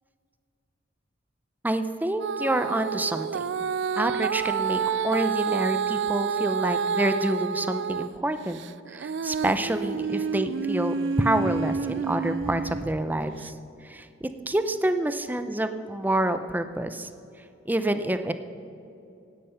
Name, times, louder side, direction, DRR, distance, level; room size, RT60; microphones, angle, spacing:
voice 1, 1.6-3.5 4.0-8.6 8.9-13.5 13.8-17.1 17.7-18.3, right 1 dB, 10° right, 9 dB, 0.6 m, -27 dB
Female singing, 2.2-8.1 8.5-12.9 13.5-13.6, right 6 dB, 70° right, 0.4 m, -29 dB
16.0 x 10.0 x 5.7 m, 2.6 s
head